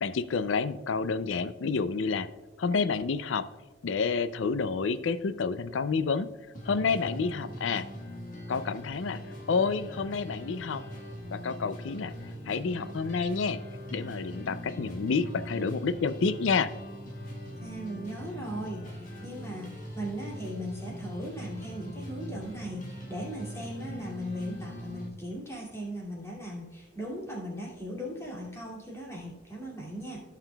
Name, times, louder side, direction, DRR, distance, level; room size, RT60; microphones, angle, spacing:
voice 1, 0.0-2.3 2.6-3.5 3.8-6.3 6.7-7.9 8.5-9.2 9.5-10.8 11.3-12.1 12.5-13.6 13.9-16.7, left 5 dB, 65° left, 13 dB, 0.4 m, -29 dB
sound 1, 6.5-25.1, equal, 40° left, 1.4 m, -41 dB
voice 2, 17.6-30.2, equal, 15° left, -4 dB, 2.3 m, -38 dB
16.0 x 5.8 x 2.3 m, 1.1 s
head